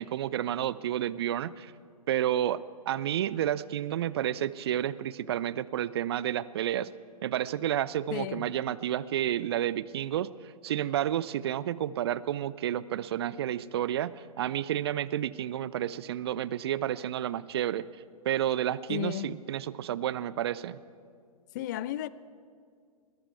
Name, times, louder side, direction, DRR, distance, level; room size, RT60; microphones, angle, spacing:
voice 1, 0.0-1.7 2.1-6.9 7.2-10.3 10.6-17.8 18.2-20.8, right 11 dB, 45° right, 0.5 m, -30 dB
voice 2, 8.1-8.5 18.9-19.4 21.5-22.1, left 14 dB, 30° left, 0.4 m, -34 dB
21.0 x 14.0 x 4.6 m
figure-of-eight pair, 110°, 19 cm